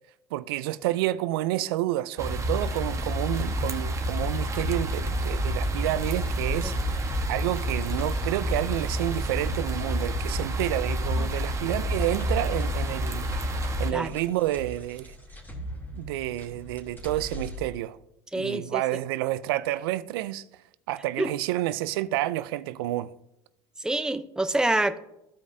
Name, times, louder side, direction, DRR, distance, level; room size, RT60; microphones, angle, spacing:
voice 1, 0.3-15.1 15.9-18.0 18.4-20.4 20.9-23.1, right 15 dB, 85° right, 0.4 m, -29 dB
sound 1, 2.2-13.9, equal, 25° right, 1.2 m, -28 dB
sound 2, 6.1-17.6, equal, 15° left, 2.3 m, -43 dB
voice 2, 18.3-18.8 21.2-21.3 23.8-25.0, right 2 dB, 5° right, 0.7 m, -26 dB
14.5 x 4.9 x 2.7 m
supercardioid pair, 90°, 12 cm